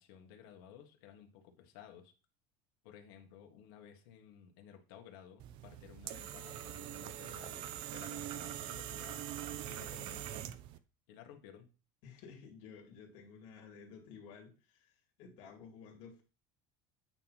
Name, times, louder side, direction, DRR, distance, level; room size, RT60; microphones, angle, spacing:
voice 1, 0.0-2.1 2.8-9.2 9.7-10.5 11.1-11.7, left 9 dB, 70° left, 3 dB, 1.5 m, -55 dB
sound 1, 5.4-10.8, right 11 dB, 40° right, 0.5 m, -43 dB
voice 2, 12.0-16.2, left 6 dB, 45° left, 0 dB, 2.4 m, -53 dB
8.8 x 3.0 x 5.6 m, 0.33 s
cardioid pair, 175°, 12 cm